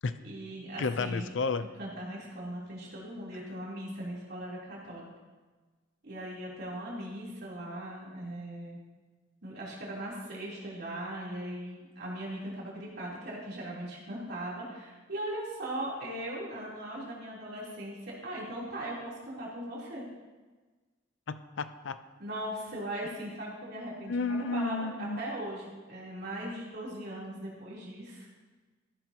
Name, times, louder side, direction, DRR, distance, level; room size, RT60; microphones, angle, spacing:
voice 1, 0.2-1.3 1.8-5.1 6.0-8.8 9.4-20.1 22.2-28.3, right 1 dB, 55° right, -5 dB, 3.4 m, -39 dB
voice 2, 0.8-1.7 21.3-22.0 24.1-25.2, left 4 dB, 70° left, 12 dB, 0.5 m, -32 dB
14.0 x 11.5 x 2.9 m, 1.3 s
head